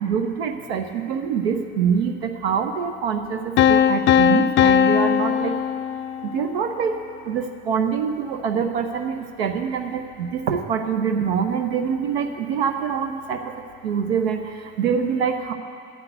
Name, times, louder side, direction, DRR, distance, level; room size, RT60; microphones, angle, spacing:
voice 1, 0.0-5.5 6.2-6.9 7.3-13.4 13.8-15.5, right 7 dB, 70° right, 6 dB, 0.8 m, -25 dB
sound 1, 3.6-6.5, left 9 dB, 35° left, 0.4 m, -18 dB
9.8 x 8.2 x 8.0 m, 2.3 s
figure-of-eight pair, 60°, 33 cm